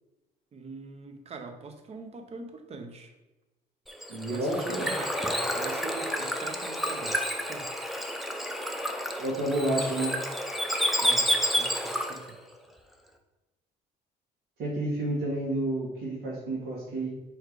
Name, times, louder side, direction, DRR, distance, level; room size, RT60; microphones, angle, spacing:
voice 1, 0.5-3.1 4.3-7.2 7.5-7.7 11.0-12.4, right 4 dB, 40° right, 6 dB, 0.9 m, -42 dB
Bird / Water, 3.9-12.3, equal, ahead, 0.7 m, -30 dB
voice 2, 4.1-4.9 9.2-10.1 14.6-17.1, right 1 dB, 80° right, -6 dB, 2.1 m, -30 dB
4.6 x 4.6 x 4.7 m, 1.0 s
cardioid pair, 110°, 17 cm